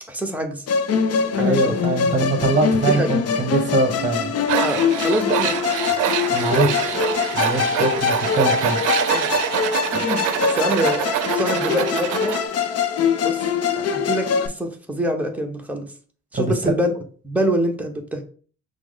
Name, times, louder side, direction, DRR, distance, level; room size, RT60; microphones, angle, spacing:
voice 1, 0.1-0.6 1.4-1.8 2.9-3.1 4.6-5.6 9.1-9.4 9.9-11.0 11.3-12.4 13.2-13.4 13.8-15.9 16.3-16.9 17.2-18.2, equal, 5° right, 0.9 m, -25 dB
Musical instrument, 0.7-14.5, left 6 dB, 55° left, 0.6 m, -23 dB
voice 2, 1.4-4.3 6.3-7.0 7.3-8.8 16.3-16.7, right 2 dB, 25° right, 1.1 m, -23 dB
Tools, 4.5-12.4, right 11 dB, 80° right, 0.5 m, -25 dB
5.8 x 2.1 x 3.8 m
cardioid pair, 90°, 30 cm